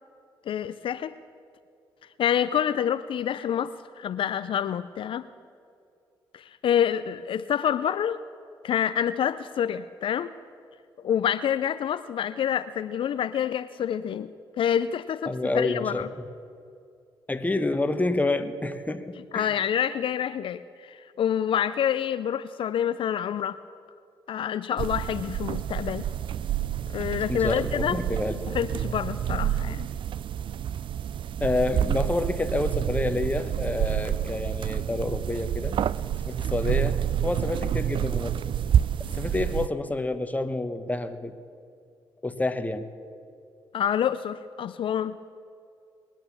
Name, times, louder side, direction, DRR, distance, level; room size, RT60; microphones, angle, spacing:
voice 1, 0.5-1.2 2.2-5.3 6.3-8.2 8.6-10.3 11.0-14.3 14.6-16.1 19.3-23.6 24.3-26.1 26.9-28.0 28.5-29.9 43.7-45.2, left 9 dB, 65° left, 13 dB, 0.4 m, -27 dB
voice 2, 15.3-16.1 17.3-19.5 27.3-28.4 31.4-35.7 36.2-38.4 39.1-41.3 42.2-42.9, left 2 dB, 15° left, 9 dB, 1.1 m, -28 dB
sound 1, 24.8-39.7, right 10 dB, 60° right, 0.4 m, -28 dB
21.0 x 9.0 x 7.1 m, 2.5 s
supercardioid pair, 55°, 10 cm